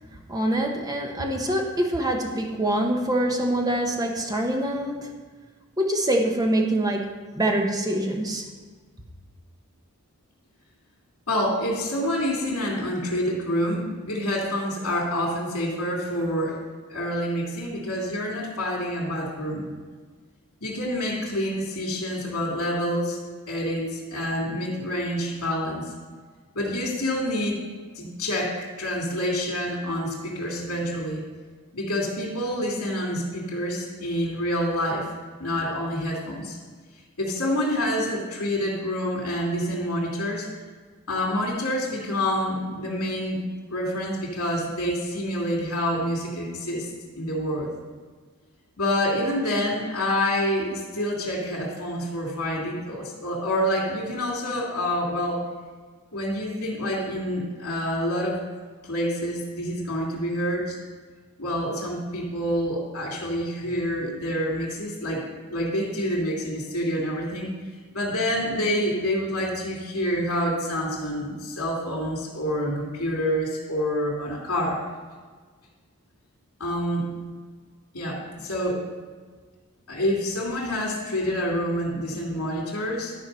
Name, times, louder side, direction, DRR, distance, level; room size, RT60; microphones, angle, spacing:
voice 1, 0.3-5.1 5.8-8.4, right 1 dB, 15° right, 2 dB, 1.0 m, -25 dB
voice 2, 11.3-16.6 16.9-19.7 20.6-23.2 23.5-25.9 26.5-27.6 28.0-31.2 31.7-35.1 35.4-36.6 37.2-40.5 41.1-43.4 43.7-46.9 47.2-47.7 48.8-55.4 56.1-58.4 58.8-60.8 61.4-67.5 67.9-74.8 76.6-77.1 77.9-78.8 79.9-83.1, equal, 85° left, -3 dB, 2.5 m, -27 dB
12.5 x 4.7 x 5.4 m, 1.5 s
head